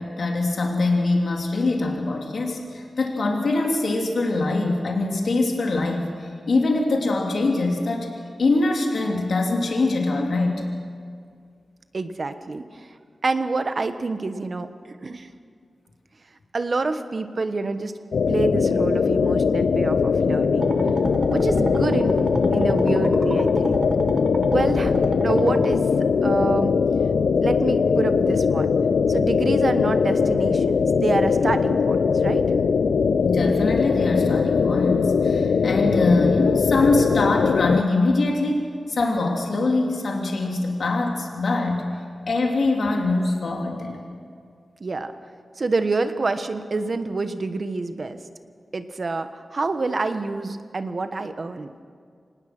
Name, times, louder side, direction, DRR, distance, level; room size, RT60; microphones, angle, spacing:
voice 1, 0.0-8.1 8.4-10.7 33.2-42.0 42.3-44.0, left 2 dB, 65° left, 0 dB, 3.2 m, -23 dB
voice 2, 11.9-13.0 13.2-15.3 16.5-17.9 18.3-20.7 21.3-22.2 22.5-23.8 24.5-25.8 26.2-26.7 27.4-28.7 29.1-32.5 44.8-45.1 45.6-48.2 48.7-51.7, right 3 dB, 45° right, 9 dB, 1.3 m, -27 dB
sound 1, 18.1-37.8, left 5 dB, 85° left, 0.6 m, -21 dB
sound 2, 20.6-25.8, right 2 dB, 25° right, 1.3 m, -30 dB
25.5 x 19.5 x 6.1 m, 2.2 s
wide cardioid pair, 105°, 0 cm